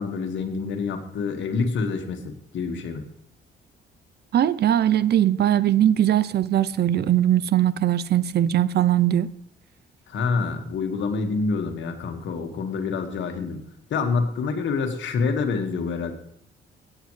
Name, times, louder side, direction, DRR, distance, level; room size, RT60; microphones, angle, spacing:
voice 1, 0.0-3.0 10.1-13.6 13.9-16.1, left 4 dB, 70° left, 1.7 m, -27 dB
voice 2, 4.3-9.3, right 11 dB, 55° right, 0.6 m, -20 dB
16.5 x 8.9 x 3.2 m
cardioid pair, 90°, 20 cm